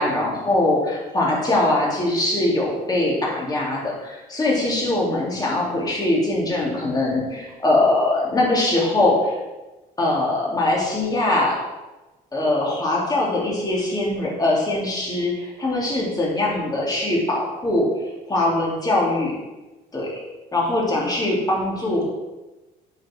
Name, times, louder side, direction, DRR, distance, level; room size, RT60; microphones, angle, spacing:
voice 1, 0.0-9.3 10.0-11.6 12.3-19.4 19.9-20.1 20.5-22.0, left 2 dB, 20° left, -3 dB, 2.8 m, -22 dB
8.5 x 5.7 x 4.5 m, 1.1 s
cardioid pair, 110°, 17 cm